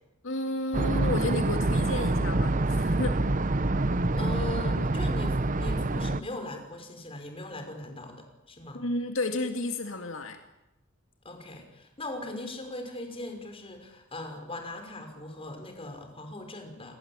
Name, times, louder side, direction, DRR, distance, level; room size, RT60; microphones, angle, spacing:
voice 1, 0.2-3.5 8.7-10.4, left 2 dB, 80° left, 6 dB, 2.2 m, -32 dB
sound 1, 0.7-6.2, right 2 dB, 40° right, 1.0 m, -26 dB
voice 2, 3.8-8.8 11.2-17.0, left 2 dB, 30° left, 5 dB, 5.9 m, -40 dB
29.0 x 21.5 x 9.0 m, 0.95 s
head